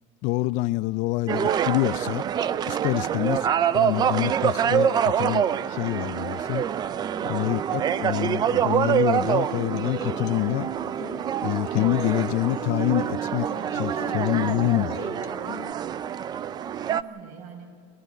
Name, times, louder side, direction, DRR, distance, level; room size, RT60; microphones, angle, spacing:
voice 1, 0.2-2.2 2.7-3.4 3.7-6.6 7.2-10.7 11.4-15.1, left 18 dB, 50° left, 0.4 m, -26 dB
sound 1, 1.3-17.0, right 9 dB, 25° right, 0.5 m, -26 dB
voice 2, 3.1-3.6 7.3-7.9 16.6-17.8, right 6 dB, 55° right, 5.3 m, -46 dB
Acoustic guitar, 7.7-15.7, left 13 dB, 70° left, 1.2 m, -42 dB
29.5 x 12.5 x 9.1 m
supercardioid pair, 140°, 16 cm